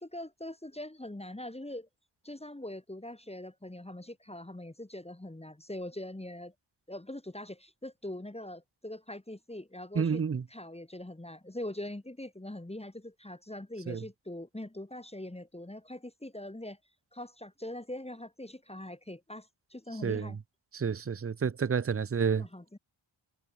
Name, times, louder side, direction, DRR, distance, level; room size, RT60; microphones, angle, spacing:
voice 1, 0.0-1.9 2.2-6.5 6.9-10.2 10.5-16.8 17.1-20.4 22.4-22.8, left 1 dB, 15° left, 1.8 m, -42 dB
voice 2, 10.0-10.4 13.9-14.0 20.0-20.3 20.7-22.5, right 6 dB, 30° right, 0.6 m, -29 dB
wide cardioid pair, 110°, 47 cm